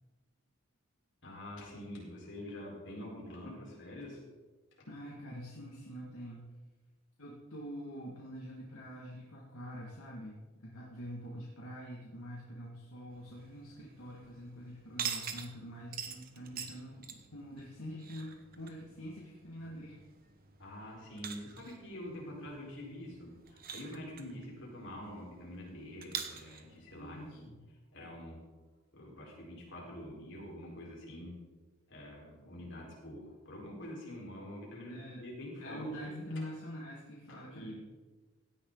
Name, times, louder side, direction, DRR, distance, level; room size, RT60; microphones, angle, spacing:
voice 1, 1.2-4.2 20.6-27.5 27.9-28.4 28.9-31.3 31.9-36.2 37.5-37.7, left 1 dB, 55° left, -3 dB, 4.8 m, -46 dB
voice 2, 4.9-6.5 7.2-20.0 26.9-27.6 34.9-35.2 35.6-37.7, equal, 70° left, -4 dB, 2.2 m, -45 dB
sound 1, 13.1-27.5, right 7 dB, 40° right, 1.1 m, -46 dB
16.5 x 10.0 x 4.0 m, 1.3 s
head